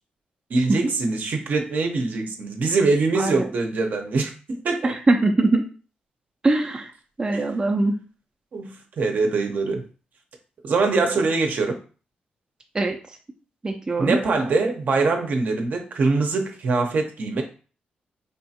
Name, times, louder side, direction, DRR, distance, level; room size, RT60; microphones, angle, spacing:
voice 1, 0.5-4.9 7.3-7.5 8.5-8.7 9.0-9.8 10.6-11.8 14.0-17.4, right 3 dB, 60° right, 4 dB, 0.7 m, -23 dB
voice 2, 4.8-5.6 6.4-6.9 7.2-7.9 12.7-13.0 13.6-14.2, right 2 dB, 25° right, 2 dB, 0.4 m, -21 dB
3.5 x 2.4 x 2.7 m, 0.37 s
cardioid pair, 90°, 3 cm